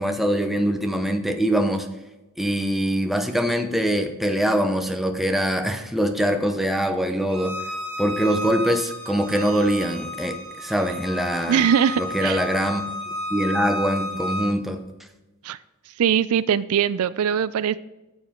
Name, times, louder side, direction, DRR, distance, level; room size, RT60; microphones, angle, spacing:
voice 1, 0.0-1.9 2.4-7.6 8.0-11.6 12.0-12.8 13.3-14.8, equal, ahead, 5 dB, 0.7 m, -23 dB
Bowed string instrument, 7.3-14.5, left 1 dB, 55° right, 2.0 m, -32 dB
voice 2, 11.5-12.4 15.4-15.6 16.0-17.8, right 8 dB, 75° right, 17 dB, 0.4 m, -21 dB
9.3 x 7.2 x 3.7 m, 1.0 s
head